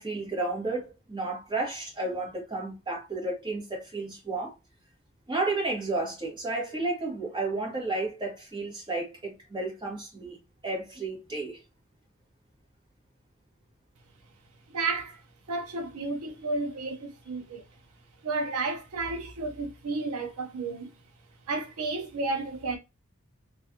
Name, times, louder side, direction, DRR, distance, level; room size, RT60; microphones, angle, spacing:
voice 1, 0.0-4.5 5.3-10.4 10.6-11.6, right 2 dB, 20° right, 1.2 m, -32 dB
voice 2, 14.7-15.2 15.5-17.6 18.2-20.9 21.5-22.8, right 3 dB, 80° right, 0.6 m, -32 dB
3.2 x 2.3 x 2.7 m
head